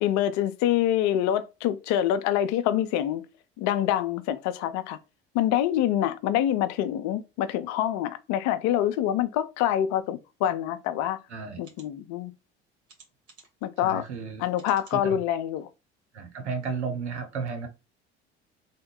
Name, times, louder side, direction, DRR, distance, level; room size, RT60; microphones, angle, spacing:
voice 1, 0.0-3.2 3.6-5.0 5.3-11.2 11.6-12.3 13.6-14.0 14.4-15.7, left 11 dB, 55° left, 0.6 m, -26 dB
sound 1, 10.8-10.9 11.6-11.9 12.9-13.6 14.5-15.0 15.6-15.7 16.0-16.1, right 4 dB, 45° right, 1.7 m, -54 dB
voice 2, 11.3-11.6 13.8-14.4 14.9-15.2 16.1-17.7, right 5 dB, 85° right, 0.8 m, -33 dB
3.6 x 2.2 x 3.7 m
hypercardioid pair, 65°, 33 cm